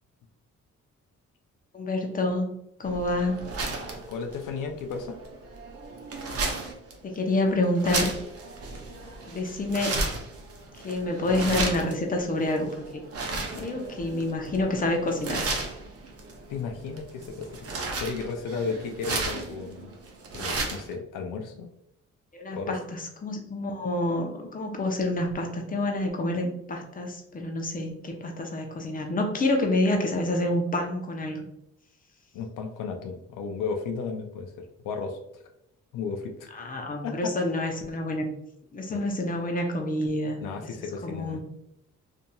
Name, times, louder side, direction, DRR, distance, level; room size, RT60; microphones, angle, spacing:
voice 1, 1.7-3.4 7.0-8.1 9.3-9.9 10.8-13.0 13.5-15.5 22.3-31.5 36.5-38.3 38.7-40.4 41.0-41.4, left 1 dB, 25° left, 2 dB, 0.7 m, -28 dB
sound 1, 2.8-20.9, right 3 dB, 50° right, 0.7 m, -34 dB
voice 2, 4.1-5.2 13.4-13.7 16.5-17.6 18.0-20.0 20.3-21.7 22.5-22.8 32.3-35.4 35.9-36.5 37.0-37.3 38.9-39.1 40.4-41.4, left 5 dB, 85° left, 4 dB, 0.5 m, -34 dB
2.7 x 2.6 x 2.2 m, 0.81 s
cardioid pair, 65°, 31 cm